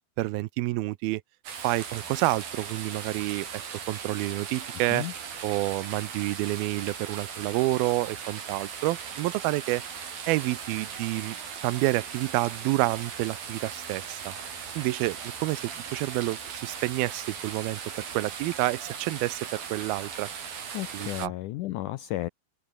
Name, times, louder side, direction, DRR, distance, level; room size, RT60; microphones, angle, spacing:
voice 1, 0.2-1.2 1.6-3.6 3.9-5.1 5.4-9.8 10.3-11.4 11.6-14.4 14.8-20.3 20.9-21.3, right 19 dB, 80° right, 2.5 m, -29 dB
sound 1, 1.4-21.3, right 7 dB, 65° right, 5.6 m, -38 dB
voice 2, 20.7-22.3, left 16 dB, 80° left, 1.8 m, -33 dB
open air
omnidirectional pair, 4.4 m